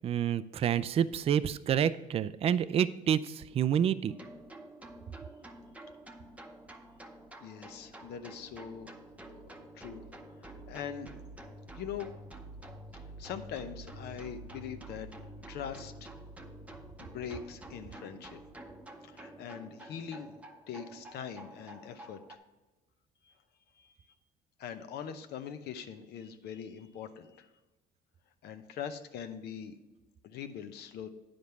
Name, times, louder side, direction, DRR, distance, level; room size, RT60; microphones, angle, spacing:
voice 1, 0.0-4.1, right 9 dB, 35° right, 15 dB, 0.3 m, -28 dB
sound 1, 4.1-22.4, right 1 dB, 10° right, 0.7 m, -49 dB
voice 2, 7.4-8.9 9.7-10.0 10.4-11.1 11.7-12.1 12.9-15.1 15.5-16.1 17.0-18.4 19.0-20.3 20.7-22.4 23.2-23.3 23.8-24.0 24.6-27.5 28.4-29.8 30.2-31.1, left 8 dB, 70° left, 8 dB, 0.7 m, -42 dB
9.5 x 5.1 x 5.7 m, 1.1 s
cardioid pair, 110°, 17 cm